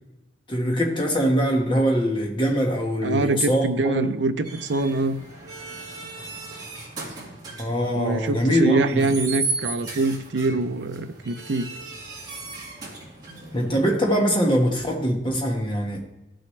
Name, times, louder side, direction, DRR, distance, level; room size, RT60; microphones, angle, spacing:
voice 1, 0.5-4.1 7.6-9.1 13.5-16.1, equal, 25° left, 1 dB, 1.4 m, -23 dB
voice 2, 3.0-5.2 7.9-11.7, right 3 dB, 65° right, 8 dB, 0.5 m, -24 dB
sound 1, 4.4-13.9, right 3 dB, 20° right, 2.3 m, -36 dB
14.5 x 6.3 x 3.3 m, 0.97 s
head